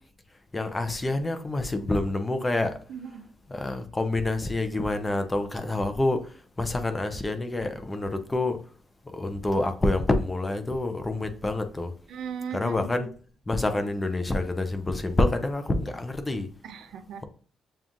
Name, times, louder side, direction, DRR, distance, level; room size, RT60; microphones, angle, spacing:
voice 1, 0.5-2.8 3.5-8.6 9.1-11.9 12.5-13.1 13.5-16.5, left 2 dB, 15° left, 0.5 m, -27 dB
voice 2, 2.9-3.3 12.1-13.1 16.6-17.2, right 7 dB, 75° right, 0.5 m, -38 dB
7.0 x 2.4 x 2.5 m
cardioid pair, 150°, 0 cm